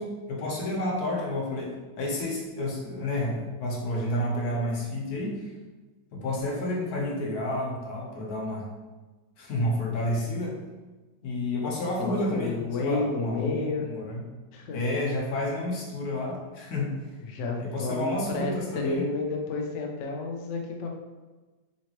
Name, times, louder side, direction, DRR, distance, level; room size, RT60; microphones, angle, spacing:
voice 1, 0.0-5.4 6.1-8.7 9.4-10.6 11.2-14.2 14.7-16.9 17.6-19.0, left 1 dB, 60° left, -2 dB, 1.3 m, -30 dB
voice 2, 12.0-13.9 14.5-14.8 17.2-20.9, left 3 dB, 85° left, 1 dB, 0.6 m, -31 dB
4.1 x 3.1 x 2.9 m, 1.2 s
omnidirectional pair, 1.9 m